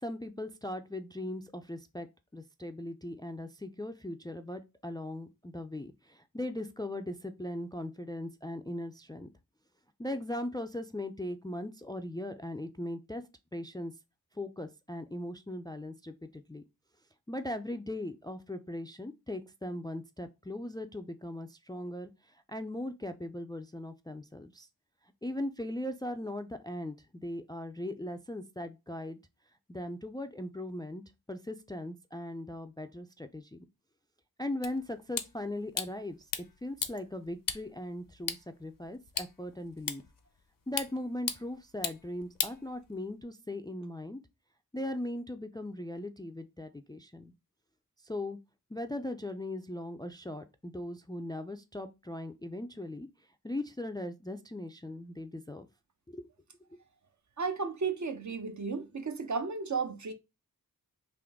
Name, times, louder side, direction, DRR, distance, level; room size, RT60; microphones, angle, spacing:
voice 1, 0.0-2.1 2.3-9.3 10.0-13.2 13.5-13.9 14.3-16.6 17.3-24.7 25.2-29.2 29.7-31.0 31.3-33.6 34.4-40.0 40.7-44.2 44.7-47.3 48.0-48.4 48.7-53.1 53.4-55.7 56.1-56.3 56.7-56.8, left 1 dB, 10° left, 0.3 m, -39 dB
sound 1, 34.6-43.2, left 6 dB, 65° left, 0.6 m, -40 dB
voice 2, 57.4-60.1, right 5 dB, 55° right, 0.6 m, -34 dB
3.7 x 2.5 x 3.4 m
wide cardioid pair, 65°, 36 cm